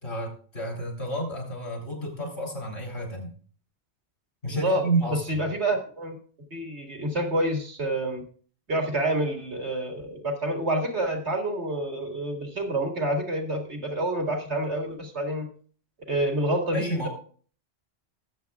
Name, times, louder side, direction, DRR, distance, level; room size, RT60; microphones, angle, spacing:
voice 1, 0.0-3.3 4.4-5.2 16.7-17.1, right 2 dB, 80° left, 0 dB, 3.5 m, -30 dB
voice 2, 4.5-4.8 5.1-6.2 6.5-8.2 8.7-15.5 16.1-17.1, right 1 dB, 85° right, 2 dB, 2.3 m, -28 dB
20.0 x 7.3 x 2.4 m, 0.43 s
omnidirectional pair, 1.1 m